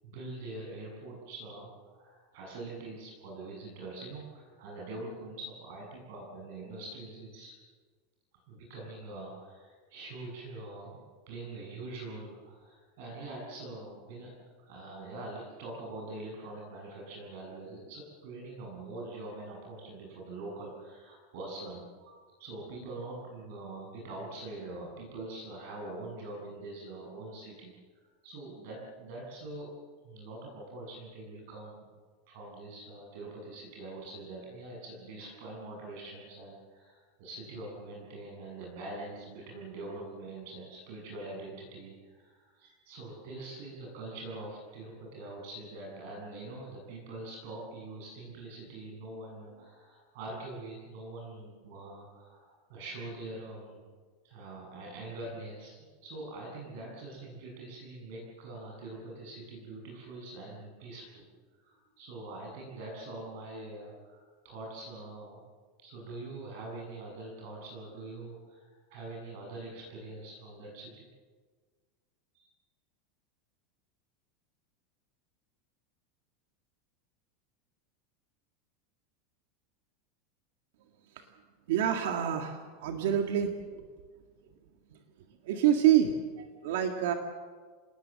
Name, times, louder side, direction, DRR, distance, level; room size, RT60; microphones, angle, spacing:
voice 1, 0.0-7.5 8.5-14.3 14.6-27.7 28.2-29.7 30.0-31.8 32.3-53.8 54.2-61.2 61.6-65.4 65.8-71.1 72.3-72.5, right 2 dB, 50° right, -2 dB, 7.6 m, -44 dB
voice 2, 81.7-83.5 85.5-87.1, right 10 dB, 70° right, 5 dB, 1.9 m, -27 dB
27.0 x 20.0 x 7.7 m, 1.6 s
supercardioid pair, 175°, 0 cm